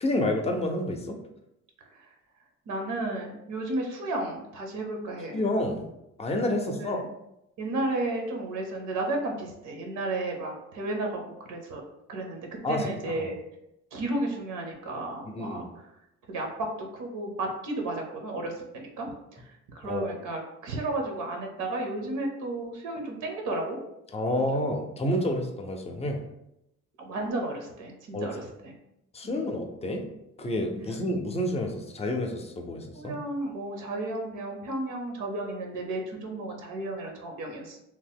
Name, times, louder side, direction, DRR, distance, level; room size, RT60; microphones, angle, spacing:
voice 1, 0.0-1.2 5.3-5.8 6.2-7.0 12.6-13.3 15.3-15.7 19.8-20.0 24.1-26.2 28.1-28.3 29.1-30.0 30.4-33.1, left 1 dB, 20° left, 4 dB, 0.5 m, -29 dB
voice 2, 2.7-5.4 6.6-7.1 7.6-11.2 11.5-11.8 12.1-13.4 13.9-15.8 16.3-16.7 16.9-19.4 19.7-23.8 24.6-24.8 27.0-28.7 29.2-29.5 32.9-37.8, right 2 dB, 85° right, 2 dB, 0.7 m, -33 dB
2.8 x 2.0 x 3.4 m, 0.86 s
cardioid pair, 90°, 30 cm